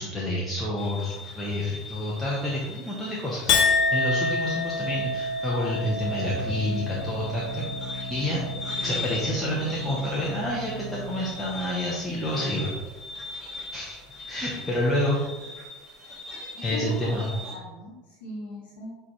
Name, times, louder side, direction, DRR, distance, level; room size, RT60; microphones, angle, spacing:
voice 1, 0.0-3.6 3.9-7.6 8.1-8.4 8.8-12.7 13.7-14.0 14.3-15.2 16.6-17.2, left 1 dB, 5° left, -6 dB, 0.8 m, -28 dB
sound 1, 0.8-17.5, left 3 dB, 25° left, 1.1 m, -40 dB
Chink clink, 3.5-10.0 10.4-11.0, left 3 dB, 45° left, 0.5 m, -29 dB
Organ, 4.0-14.5, right 1 dB, 55° right, 0.6 m, -40 dB
voice 2, 16.5-19.0, left 1 dB, 65° left, -6 dB, 0.9 m, -38 dB
6.0 x 2.2 x 2.9 m, 1.2 s
figure-of-eight pair, 70°, 0 cm